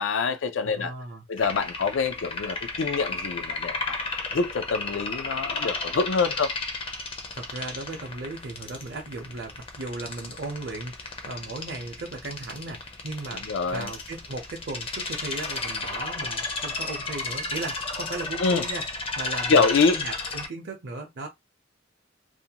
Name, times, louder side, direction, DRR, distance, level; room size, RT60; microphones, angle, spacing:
voice 1, 0.0-0.9 1.3-4.0 4.3-6.6 13.3-13.9 18.4-18.6 19.5-20.0, left 4 dB, 80° left, 0.4 m, -25 dB
voice 2, 0.6-1.3 7.3-13.4 13.7-18.8 19.2-19.6 19.9-21.3, right 2 dB, 60° right, 0.6 m, -36 dB
sound 1, 1.4-20.5, left 3 dB, 30° left, 0.5 m, -33 dB
2.5 x 2.2 x 2.8 m
head